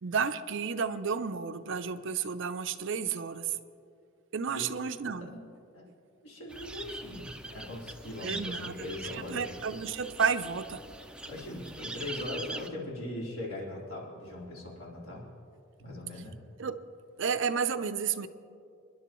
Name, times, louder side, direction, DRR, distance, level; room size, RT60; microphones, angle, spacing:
voice 1, 0.0-3.6 4.3-5.3 8.2-8.7 9.1-10.8 16.6-16.8 17.2-18.3, right 6 dB, 55° right, 11 dB, 0.5 m, -31 dB
voice 2, 6.2-9.5 11.2-15.3 15.8-16.4, left 1 dB, 70° left, -5 dB, 4.1 m, -40 dB
sound 1, 6.5-12.7, right 2 dB, 5° right, 0.5 m, -42 dB
28.0 x 11.0 x 3.1 m, 2.4 s
head